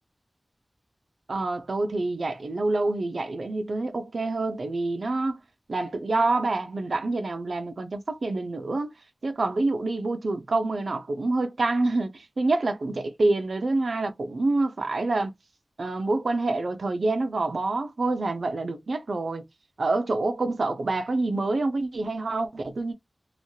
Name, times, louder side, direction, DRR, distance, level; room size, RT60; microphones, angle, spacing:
voice 1, 1.3-5.4 5.7-8.9 9.2-15.3 15.8-19.4 19.8-22.9, right 2 dB, 85° right, 0.5 m, -27 dB
3.0 x 2.4 x 2.7 m
wide cardioid pair, 75°, 0 cm